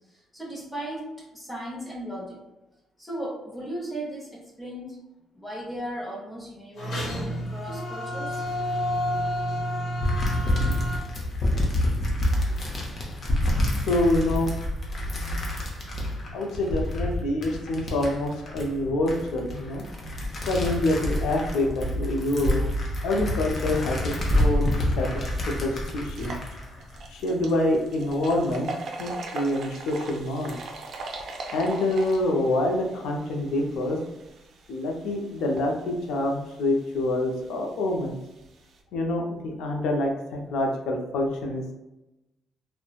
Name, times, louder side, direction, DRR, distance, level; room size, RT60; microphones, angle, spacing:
voice 1, 0.1-2.4 3.0-5.0 5.3-8.4, right 1 dB, 10° left, -4 dB, 0.7 m, -36 dB
sound 1, 6.8-11.0, equal, 60° left, 1.0 m, -29 dB
sound 2, 10.0-27.6 28.1-28.5, left 1 dB, 45° left, 0.7 m, -28 dB
voice 2, 13.8-14.5 16.3-19.8 20.5-22.6 23.0-25.1 25.6-26.3 27.1-28.7 29.0-30.6 31.5-34.0 34.7-38.1 38.9-41.7, left 1 dB, 85° left, 1 dB, 0.5 m, -26 dB
sound 3, 26.0-38.8, right 3 dB, 65° right, 0.4 m, -41 dB
3.0 x 2.1 x 2.3 m, 0.97 s
cardioid pair, 90°, 0 cm